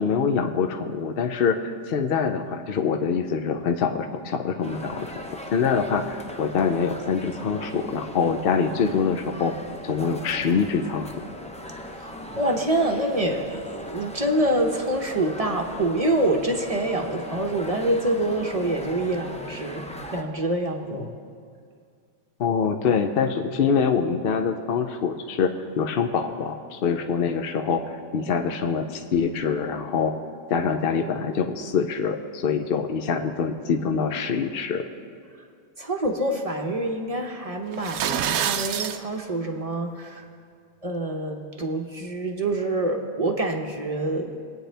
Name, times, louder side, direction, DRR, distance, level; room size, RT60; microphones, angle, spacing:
voice 1, 0.0-9.5 9.8-11.1 22.4-25.5 25.8-30.1 30.5-34.8, left 6 dB, 55° left, 6 dB, 0.7 m, -25 dB
sound 1, 4.6-20.2, equal, 10° left, 0.5 m, -39 dB
voice 2, 12.4-19.8 20.1-21.1 28.2-28.3 35.4-35.5 35.8-40.3 40.8-44.3, right 1 dB, 30° right, 3 dB, 0.8 m, -26 dB
sound 2, 37.7-39.0, right 9 dB, 85° right, 1.1 m, -26 dB
21.5 x 8.9 x 3.4 m, 2.2 s
omnidirectional pair, 1.4 m